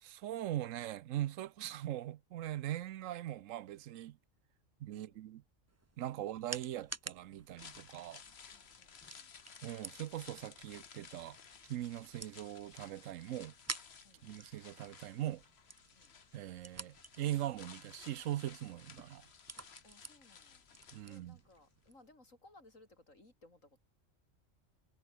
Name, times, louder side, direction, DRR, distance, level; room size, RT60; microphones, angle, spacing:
voice 1, 0.0-4.2 4.8-5.4 6.0-8.2 9.6-11.4 11.7-13.5 14.2-15.4 16.3-19.3 20.9-21.4, right 13 dB, 75° right, 1.0 m, -41 dB
voice 2, 4.9-5.2 6.2-6.3 8.5-9.3 14.0-14.3 15.9-16.1 19.8-20.6 21.0-24.0, left 2 dB, 80° left, 6.1 m, -63 dB
sound 1, 5.7-22.1, right 3 dB, 20° right, 0.5 m, -52 dB
sound 2, 7.4-21.6 21.9-22.0, left 6 dB, 55° left, 1.5 m, -57 dB
omnidirectional pair, 1.3 m